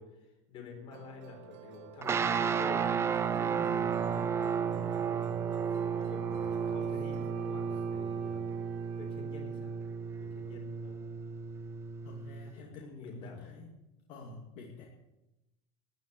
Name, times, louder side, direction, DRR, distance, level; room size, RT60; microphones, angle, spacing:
voice 1, 0.0-4.2 5.0-5.5 5.8-8.5 9.0-9.7 10.2-11.1 12.5-13.5, left 4 dB, 35° left, 3 dB, 4.2 m, -49 dB
Musical instrument, 0.9-7.3, right 8 dB, 55° right, 1.7 m, -51 dB
sound 1, 2.0-12.5, right 6 dB, 15° right, 0.6 m, -33 dB
Wind instrument woodwind instrument, 2.5-10.2, right 15 dB, 75° right, 1.9 m, -50 dB
voice 2, 3.4-4.0 4.6-5.0 12.0-13.7 14.1-14.8, left 3 dB, 50° left, -1 dB, 2.5 m, -48 dB
13.5 x 10.5 x 7.7 m, 0.96 s
supercardioid pair, 155°, 15 cm